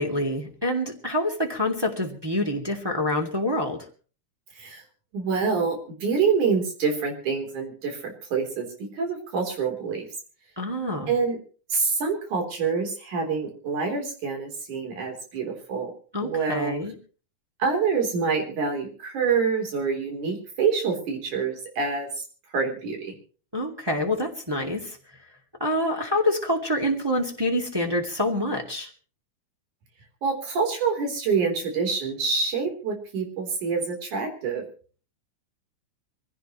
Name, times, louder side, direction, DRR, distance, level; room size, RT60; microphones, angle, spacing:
voice 1, 0.0-3.8 10.6-11.1 16.1-16.9 23.5-25.0 25.6-28.9, left 1 dB, 10° right, 1 dB, 2.1 m, -26 dB
voice 2, 5.1-8.7 8.9-10.1 11.1-11.4 11.7-15.9 16.2-16.7 17.6-22.1 22.5-23.1 30.2-34.6, right 5 dB, 85° right, 3 dB, 5.1 m, -26 dB
24.5 x 16.0 x 3.1 m, 0.40 s
omnidirectional pair, 3.4 m